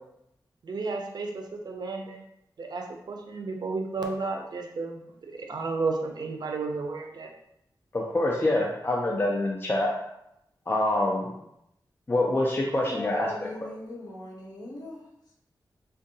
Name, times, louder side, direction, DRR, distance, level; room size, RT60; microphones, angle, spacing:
voice 1, 0.6-2.2 2.6-5.0 5.3-7.3, right 3 dB, 65° right, 2 dB, 0.5 m, -32 dB
voice 2, 7.9-9.9 10.7-11.3 12.1-13.3, left 1 dB, 30° left, -2 dB, 0.4 m, -25 dB
voice 3, 12.7-15.0, left 2 dB, 60° left, -5 dB, 1.0 m, -39 dB
3.6 x 2.2 x 2.6 m, 0.80 s
wide cardioid pair, 85°, 8 cm